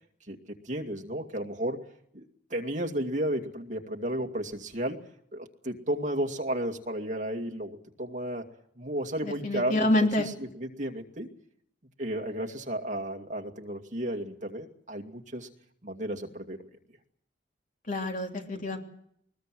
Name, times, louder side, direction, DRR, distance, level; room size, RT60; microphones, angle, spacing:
voice 1, 0.6-1.8 2.1-2.2 2.5-5.0 5.3-8.4 8.8-11.3 12.0-15.5 15.8-16.6, right 1 dB, 40° right, 2 dB, 2.4 m, -33 dB
voice 2, 9.2-10.3 17.9-18.8, left 1 dB, 45° left, 2 dB, 3.3 m, -27 dB
21.0 x 21.0 x 7.7 m, 0.69 s
head